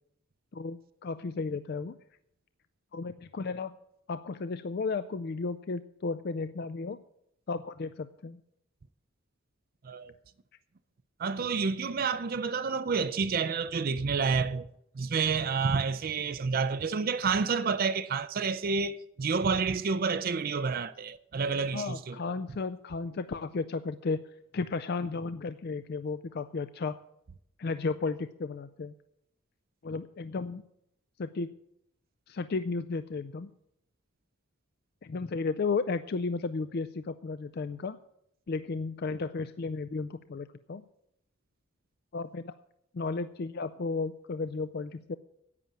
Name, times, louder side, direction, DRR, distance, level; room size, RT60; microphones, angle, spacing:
voice 1, 0.5-2.0 2.9-3.8 4.1-7.0 7.5-8.4 21.7-24.2 24.5-27.0 27.6-28.9 29.8-30.6 31.2-31.5 32.3-33.5 35.0-38.0 38.5-40.8 42.1-42.5 42.9-45.2, left 4 dB, 45° left, 0.4 m, -34 dB
voice 2, 11.2-14.7 15.0-22.3, right 5 dB, 45° right, 0.4 m, -29 dB
11.0 x 8.9 x 7.3 m
head